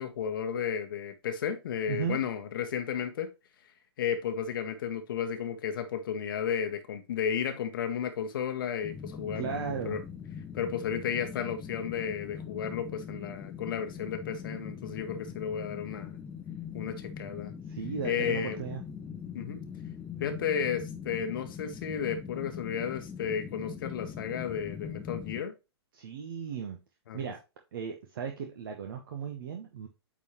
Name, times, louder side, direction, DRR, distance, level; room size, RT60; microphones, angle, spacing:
voice 1, 0.0-3.3 4.0-10.0 10.5-16.2 16.7-17.5 18.0-18.6 19.3-19.6 20.2-25.5 27.1-27.2, left 8 dB, 50° left, 1.1 m, -33 dB
voice 2, 1.9-2.2 9.3-10.0 17.7-18.8 25.9-26.8 27.1-27.4 27.7-29.9, right 7 dB, 50° right, 1.2 m, -36 dB
sound 1, 8.8-25.4, left 7 dB, 15° left, 0.8 m, -42 dB
8.7 x 4.2 x 3.2 m
figure-of-eight pair, 110°, 14 cm